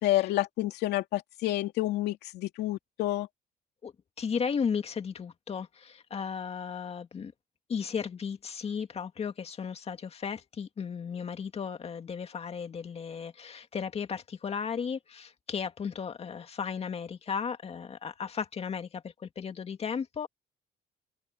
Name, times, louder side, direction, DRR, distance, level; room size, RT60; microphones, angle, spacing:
voice 1, 0.0-3.3, left 15 dB, 80° left, 2.6 m, -29 dB
voice 2, 3.8-7.3 7.7-20.3, left 6 dB, 35° left, 2.2 m, -35 dB
open air
cardioid pair, 110°, 17 cm